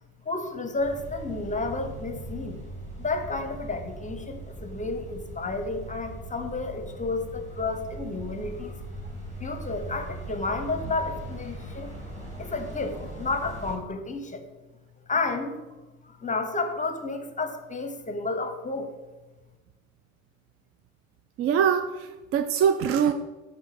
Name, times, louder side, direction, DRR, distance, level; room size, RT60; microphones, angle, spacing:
voice 1, 0.2-2.6 3.0-8.8 9.4-11.9 12.4-14.4 15.1-15.7 16.0-18.9, left 3 dB, 20° left, 6 dB, 0.8 m, -31 dB
sound 1, 0.8-13.7, right 1 dB, 15° right, 2.3 m, -40 dB
voice 2, 21.4-23.1, right 8 dB, 35° right, 9 dB, 0.4 m, -23 dB
7.4 x 3.6 x 4.7 m, 1.2 s
hypercardioid pair, 70°, 42 cm